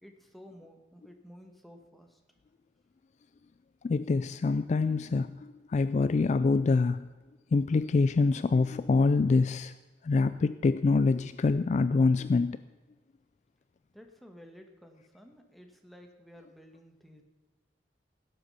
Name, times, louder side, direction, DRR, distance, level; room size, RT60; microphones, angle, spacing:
voice 1, 0.0-2.2 13.9-17.2, equal, ahead, 1.2 m, -53 dB
voice 2, 3.8-7.1 7.5-9.7 10.0-12.6, left 3 dB, 40° left, 0.3 m, -25 dB
17.0 x 7.8 x 5.6 m
head